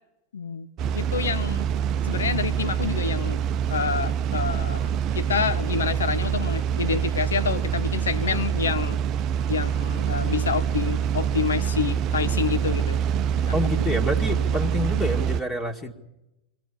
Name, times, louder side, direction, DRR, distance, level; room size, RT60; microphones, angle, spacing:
voice 1, 0.3-0.7 0.9-1.7 2.0-3.4 3.7-9.0 9.5-13.0, left 6 dB, 70° left, 1.2 m, -28 dB
sound 1, 0.8-15.4, right 8 dB, 35° right, 0.7 m, -25 dB
voice 2, 13.5-15.9, left 1 dB, 15° left, 2.1 m, -27 dB
25.0 x 15.5 x 9.8 m
figure-of-eight pair, 90°, 0 cm